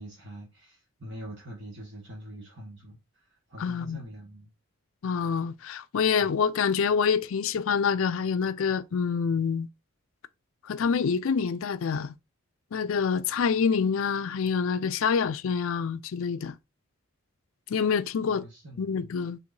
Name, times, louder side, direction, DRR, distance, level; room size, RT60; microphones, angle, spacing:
voice 1, 0.0-4.5 6.2-6.3 10.7-10.9 18.3-19.0, equal, 55° right, 1.3 m, -44 dB
voice 2, 3.6-4.0 5.0-9.7 10.6-12.1 12.7-16.5 17.7-18.4 18.8-19.4, left 6 dB, 70° left, 0.4 m, -26 dB
4.6 x 3.6 x 2.5 m
head